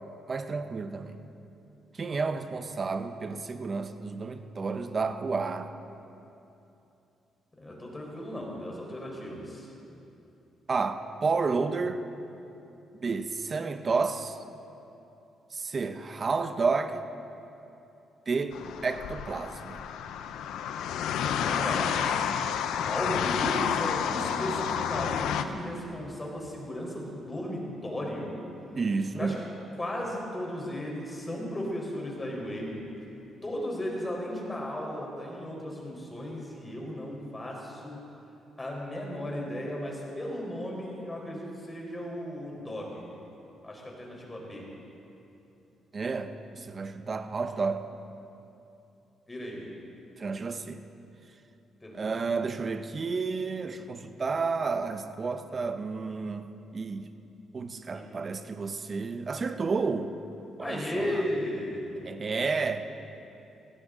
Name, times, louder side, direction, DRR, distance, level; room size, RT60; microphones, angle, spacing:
voice 1, 0.3-1.2 1.9-5.7 10.7-12.0 13.0-14.4 15.5-17.0 18.3-18.6 18.8-19.8 28.7-29.4 45.9-47.9 50.2-50.8 51.9-56.4 56.7-57.1 57.5-60.1 60.6-61.2 62.0-62.9, right 4 dB, 35° right, 8 dB, 0.9 m, -31 dB
voice 2, 7.6-9.7 21.2-22.1 22.8-28.4 29.2-29.3 29.7-32.8 33.4-38.0 38.6-43.1 43.6-44.7 49.3-49.7 51.8-52.1 57.9-58.1 60.6-62.1, left 1 dB, 20° left, -2 dB, 4.3 m, -35 dB
sound 1, 18.5-25.4, left 8 dB, 85° left, 0.7 m, -30 dB
17.5 x 16.5 x 3.9 m, 2.8 s
cardioid pair, 90°, 0 cm